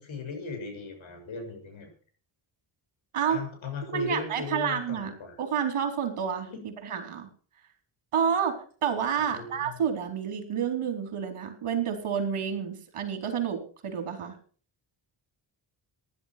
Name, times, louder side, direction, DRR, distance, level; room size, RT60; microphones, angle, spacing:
voice 1, 0.0-1.9 3.3-5.4 6.5-6.6 9.2-9.8, left 5 dB, 65° left, 3 dB, 6.9 m, -38 dB
voice 2, 3.9-5.1 5.4-6.5 6.8-7.3 8.1-8.6 8.8-14.4, right 7 dB, 80° right, 6 dB, 4.4 m, -29 dB
16.0 x 11.0 x 6.0 m, 0.42 s
wide cardioid pair, 125°, 50 cm